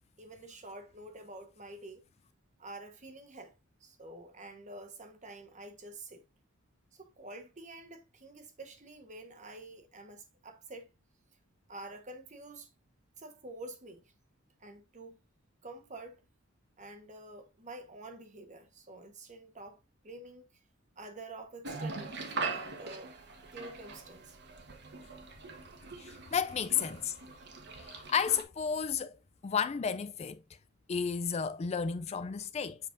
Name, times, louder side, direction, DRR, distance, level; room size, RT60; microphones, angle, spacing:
voice 1, 0.2-2.1 2.6-3.5 3.8-6.2 6.9-10.9 11.7-12.7 13.2-14.0 14.6-15.2 15.6-16.2 16.8-20.4 21.0-23.1 23.5-24.4 27.4-27.5, right 2 dB, 35° right, 1.3 m, -48 dB
sound 1, 21.6-28.4, right 4 dB, 55° right, 1.3 m, -41 dB
voice 2, 26.0-27.1 27.8-29.2 29.4-30.4 30.9-32.8, left 6 dB, 30° left, 0.3 m, -32 dB
7.5 x 5.4 x 2.6 m
head